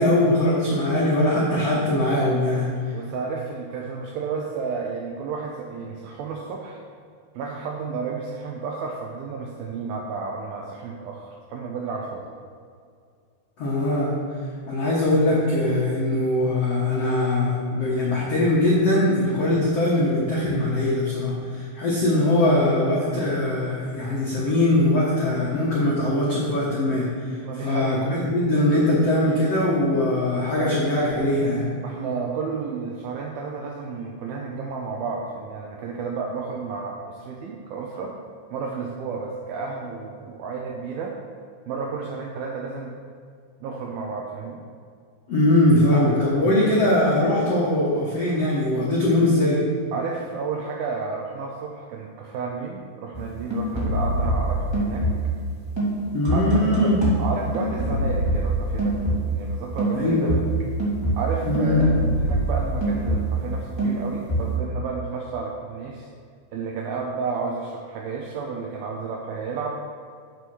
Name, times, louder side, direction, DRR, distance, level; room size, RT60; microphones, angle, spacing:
voice 1, 0.0-2.9 13.6-14.2 14.7-31.7 45.3-49.6 56.1-57.1 59.9-60.3 61.4-61.8, left 1 dB, 75° left, -6 dB, 1.4 m, -21 dB
voice 2, 2.9-6.8 7.4-12.3 27.4-28.1 31.8-38.2 38.5-41.2 41.7-42.9 43.6-44.6 49.9-55.1 56.3-56.9 57.2-59.0 59.3-60.4 61.2-66.1 66.5-69.8, right 4 dB, 80° right, 0 dB, 2.2 m, -32 dB
sound 1, 53.1-55.5 55.8-59.5 59.8-63.5 63.8-64.6, right 1 dB, 15° right, 0.9 m, -25 dB
8.0 x 7.0 x 6.1 m, 2.2 s
omnidirectional pair, 5.1 m